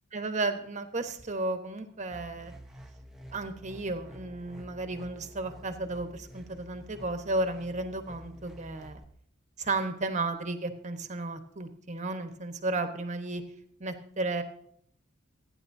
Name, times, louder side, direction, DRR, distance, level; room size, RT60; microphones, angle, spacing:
voice 1, 0.1-2.5 3.3-9.0 9.6-13.4 13.8-14.4, right 2 dB, 35° right, 7 dB, 1.3 m, -33 dB
sound 1, 2.1-9.0, equal, ahead, 1.1 m, -49 dB
27.5 x 9.9 x 2.8 m, 0.67 s
head